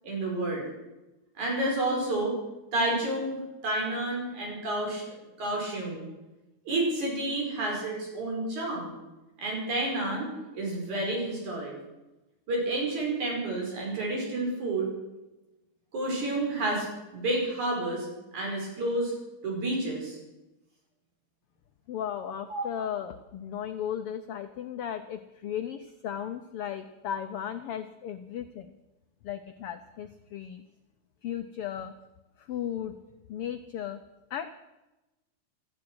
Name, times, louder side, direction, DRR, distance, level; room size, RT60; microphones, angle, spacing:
voice 1, 0.0-0.7 1.4-2.4 2.7-5.0 5.4-6.0 6.6-8.9 9.4-11.7 12.5-14.9 15.9-18.1 18.3-19.1 19.4-20.2 22.5-22.8, right 2 dB, 70° right, -1 dB, 6.8 m, -30 dB
voice 2, 21.9-28.7 29.2-30.6 31.2-31.9 32.4-32.9 33.3-34.0 34.3-34.5, left 9 dB, 75° left, 9 dB, 1.3 m, -35 dB
16.0 x 14.0 x 6.2 m, 1.0 s
omnidirectional pair, 3.5 m